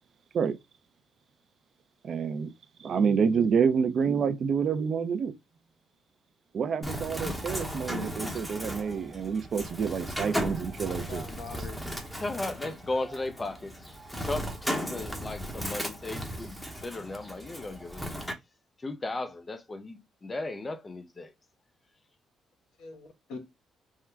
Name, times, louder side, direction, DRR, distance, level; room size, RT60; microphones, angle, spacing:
voice 1, 2.0-2.5 2.8-5.3 6.5-11.2, right 6 dB, 55° right, 0.6 m, -28 dB
Bird, 6.8-18.3, equal, 5° left, 0.9 m, -36 dB
voice 2, 10.9-12.0 22.8-23.5, left 4 dB, 85° left, 1.2 m, -43 dB
voice 3, 12.1-13.8 14.2-18.2 18.8-21.3, left 2 dB, 25° left, 0.6 m, -36 dB
3.7 x 2.2 x 4.4 m
cardioid pair, 90°, 0 cm